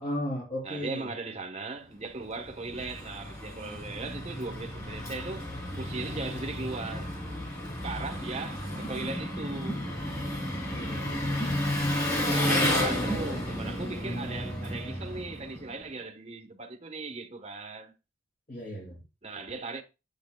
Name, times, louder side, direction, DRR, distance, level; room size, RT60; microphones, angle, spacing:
voice 1, 0.0-1.1 8.1-8.2 10.7-11.2 13.2-13.4 18.5-19.0, equal, 45° left, 3.0 m, -36 dB
voice 2, 0.6-5.5 5.8-7.2 7.8-9.9 12.2-17.9 19.2-19.8, right 3 dB, 30° right, 1.0 m, -38 dB
Engine, 2.2-15.8, left 1 dB, 15° left, 3.0 m, -32 dB
8.6 x 7.7 x 2.2 m
head